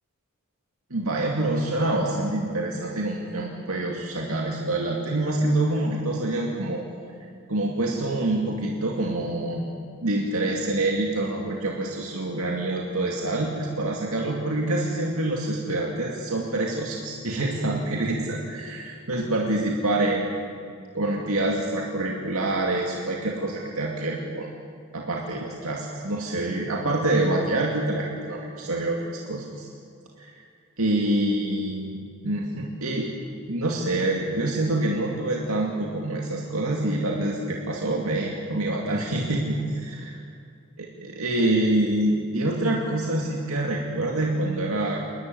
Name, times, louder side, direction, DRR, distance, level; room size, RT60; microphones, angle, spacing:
voice 1, 0.9-6.8 7.5-9.7 10.0-20.4 20.9-24.5 24.9-29.0 29.3-29.7 30.2-30.3 30.8-33.1 33.5-39.6 40.8-45.0, right 2 dB, 75° right, -1 dB, 2.4 m, -26 dB
28.5 x 12.5 x 9.4 m, 2.3 s
head